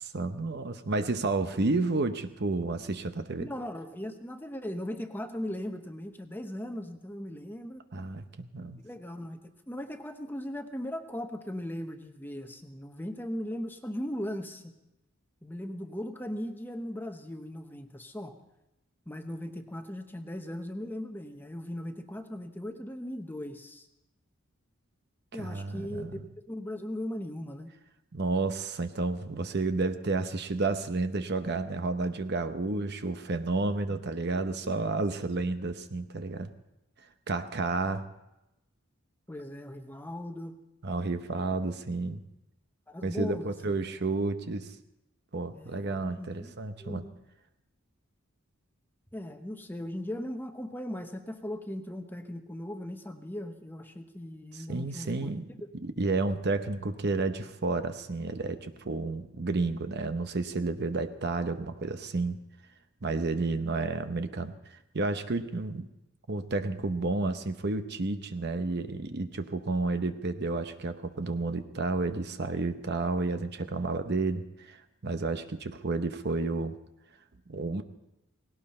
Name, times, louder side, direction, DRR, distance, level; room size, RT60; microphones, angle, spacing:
voice 1, 0.0-3.5 7.9-8.8 25.3-26.2 28.1-36.5 37.3-38.1 40.8-42.2 43.0-44.8 45.3-47.1 54.5-55.4 55.7-62.4 63.0-65.9 66.3-76.8 77.5-77.8, right 3 dB, 50° right, 9 dB, 0.8 m, -31 dB
voice 2, 3.4-7.8 8.8-14.7 15.4-18.4 19.1-23.9 25.3-27.7 33.9-34.0 39.3-40.6 41.4-41.5 42.9-43.7 45.5-46.5 46.8-47.1 49.1-55.7, left 1 dB, 10° left, 6 dB, 1.0 m, -38 dB
19.0 x 17.5 x 4.3 m, 0.91 s
head